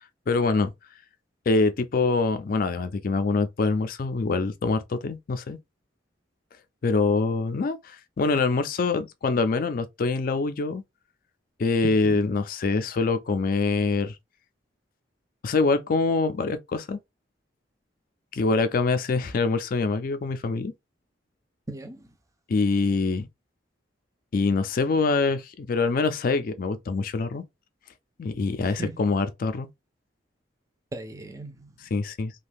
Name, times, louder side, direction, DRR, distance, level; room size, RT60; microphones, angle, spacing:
voice 1, 0.3-0.7 1.5-5.6 6.8-10.8 11.6-14.2 15.4-17.0 18.3-20.7 22.5-23.3 24.3-27.4 28.2-29.7 31.9-32.3, left 3 dB, 50° left, 0.4 m, -24 dB
voice 2, 11.8-12.2 21.7-22.2 28.6-29.1 30.9-31.9, right 3 dB, 20° right, 0.4 m, -38 dB
2.6 x 2.2 x 3.4 m
head